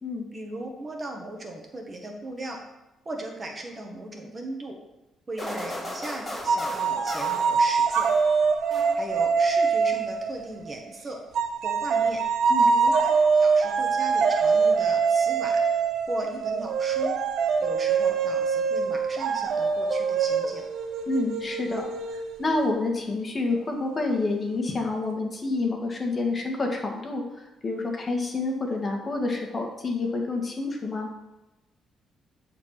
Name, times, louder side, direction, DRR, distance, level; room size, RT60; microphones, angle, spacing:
voice 1, 0.3-2.6 3.0-4.8 5.3-8.1 8.9-11.2 11.6-12.2 12.7-15.6 16.1-17.2 17.6-20.6, right 2 dB, 30° right, 2 dB, 1.6 m, -37 dB
sound 1, 5.4-8.3 8.7-9.4, left 1 dB, 10° left, 3.5 m, -36 dB
sound 2, 6.5-10.8 11.3-22.7, right 5 dB, 80° right, 0.9 m, -24 dB
voice 2, 21.1-21.9 22.4-31.1, left 3 dB, 35° left, 1 dB, 2.0 m, -28 dB
11.0 x 4.5 x 6.0 m, 0.97 s
cardioid pair, 90°, 0 cm